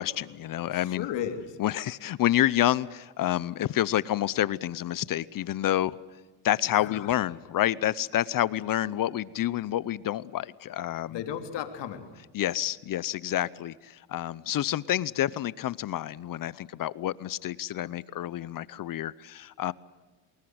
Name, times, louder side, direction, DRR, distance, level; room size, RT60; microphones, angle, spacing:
voice 1, 0.0-1.1 1.6-6.0 6.4-11.2 12.3-19.7, left 13 dB, 45° left, 20 dB, 0.7 m, -28 dB
voice 2, 0.7-1.6 6.8-7.2 11.1-12.1, left 9 dB, 65° left, 7 dB, 3.1 m, -35 dB
28.5 x 20.5 x 7.9 m, 1.3 s
cardioid pair, 110°, 45 cm